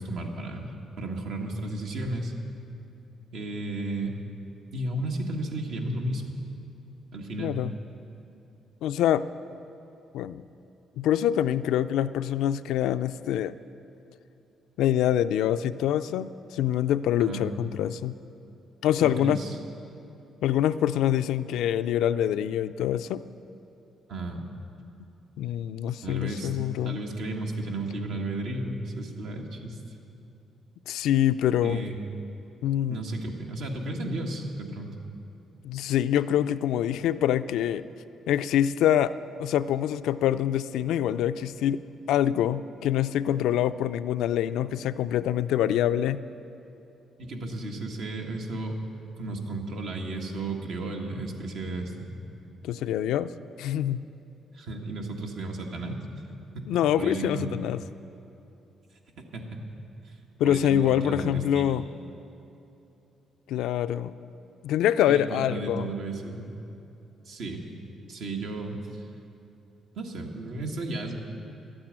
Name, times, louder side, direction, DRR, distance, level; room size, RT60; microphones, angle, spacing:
voice 1, 0.0-2.3 3.3-4.2 4.7-6.2 7.1-7.6 17.2-17.5 19.0-19.6 24.1-24.4 26.0-26.5 26.8-29.8 31.6-32.0 32.9-34.9 47.2-48.8 49.2-52.2 54.5-56.0 57.0-57.5 59.3-59.5 60.0-60.1 60.4-61.8 65.1-66.5 67.2-67.7 68.1-69.0 69.9-71.2, right 2 dB, 75° right, 1 dB, 1.6 m, -33 dB
voice 2, 7.4-7.7 8.8-9.3 10.1-10.4 11.0-13.5 14.8-18.2 18.8-19.4 20.4-23.2 25.4-27.0 30.9-31.8 32.6-33.0 35.6-37.8 38.3-41.8 42.1-46.2 52.6-53.3 53.6-54.1 56.7-57.8 60.4-61.8 63.5-64.1 64.6-65.9, left 11 dB, 85° left, 12 dB, 0.4 m, -25 dB
12.0 x 8.8 x 9.0 m, 2.9 s
cardioid pair, 90°, 0 cm